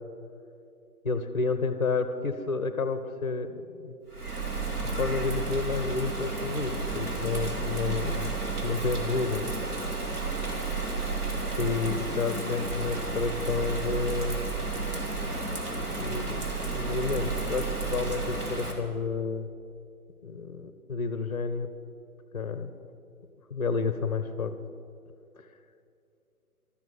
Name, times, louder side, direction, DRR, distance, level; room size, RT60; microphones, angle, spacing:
voice 1, 1.0-4.0 5.0-9.5 11.6-14.4 15.7-19.5 20.2-21.7 22.3-22.7 23.5-24.6, left 4 dB, 30° left, 11 dB, 0.6 m, -30 dB
Bird vocalization bird call bird song / Rain, 4.1-18.7, right 3 dB, 85° right, 2.9 m, -32 dB
13.0 x 9.0 x 8.2 m, 2.5 s
figure-of-eight pair, 145°, 44 cm